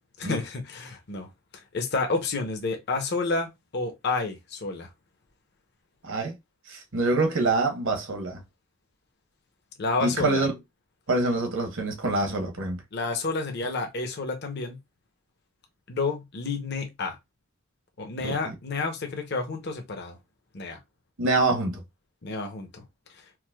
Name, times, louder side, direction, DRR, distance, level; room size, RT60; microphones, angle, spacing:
voice 1, 0.2-1.3 1.7-4.9 9.8-10.4 12.9-14.8 15.9-17.2 18.0-20.2 20.5-20.8 22.2-22.8, left 3 dB, 50° left, 0.7 m, -30 dB
voice 2, 6.0-6.3 6.7-8.4 10.0-10.5 11.1-12.8 18.2-18.5 21.2-21.8, right 2 dB, 60° right, 0.9 m, -25 dB
4.6 x 2.1 x 2.2 m
head